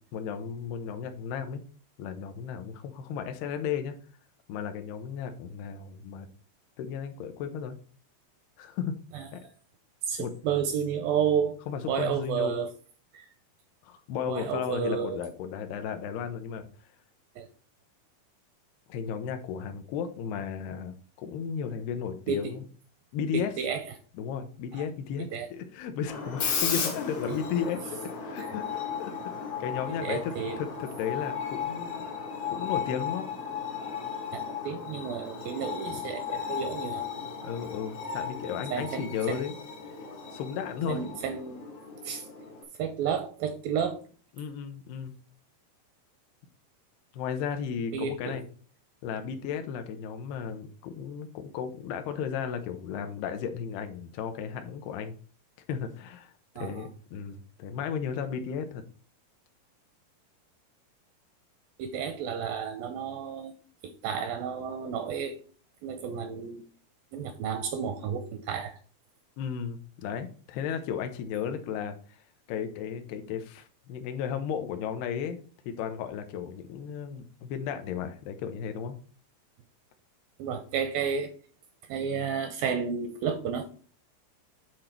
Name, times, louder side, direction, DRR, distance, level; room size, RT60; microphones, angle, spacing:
voice 1, 0.1-1.6 2.0-3.9 4.5-6.3 6.8-7.8 8.6-8.9 9.3-9.4 10.2-10.3 11.7-12.6 13.8-16.7 18.9-22.6 23.1-23.5 24.2-28.7 29.0-29.3 29.6-32.1 32.5-33.3 35.9-36.0 37.4-39.5 40.3-41.0 44.4-45.1 47.1-48.4 49.0-55.2 55.7-58.8 69.4-72.2 72.5-75.4 75.7-79.0, left 7 dB, 85° left, 7 dB, 2.8 m, -34 dB
voice 2, 10.1-11.5 11.8-12.7 13.1-13.3 14.3-15.2 17.4-17.5 22.3-22.5 23.3-23.8 24.7-24.8 25.2-25.5 27.3-27.4 28.4-28.5 30.0-30.6 34.3-37.1 38.7-39.5 40.9-41.7 42.0-42.3 42.8-44.0 47.9-48.4 56.6-56.9 61.8-63.5 63.8-65.4 65.8-66.6 67.1-68.8 80.4-81.3 81.9-83.7, right 7 dB, 85° right, 8 dB, 2.1 m, -31 dB
Screech, 26.1-42.6, left 6 dB, 65° left, 1.4 m, -35 dB
9.7 x 3.9 x 4.3 m, 0.42 s
omnidirectional pair, 4.6 m